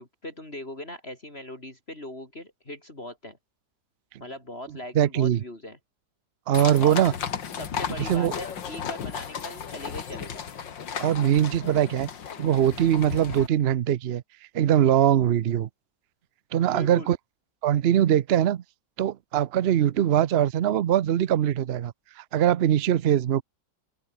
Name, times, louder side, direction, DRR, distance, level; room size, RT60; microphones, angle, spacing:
voice 1, 0.0-3.4 4.2-5.8 6.8-7.0 7.6-10.4 16.6-17.1, left 1 dB, 35° left, 4.9 m, -39 dB
voice 2, 4.9-5.4 6.5-7.1 8.0-8.3 11.0-12.1 12.4-14.2 14.5-15.7 16.5-17.2 17.6-18.6 19.0-23.4, right 10 dB, 75° right, 0.5 m, -22 dB
sound 1, 6.5-13.5, left 7 dB, 90° left, 2.4 m, -35 dB
open air
omnidirectional pair, 1.9 m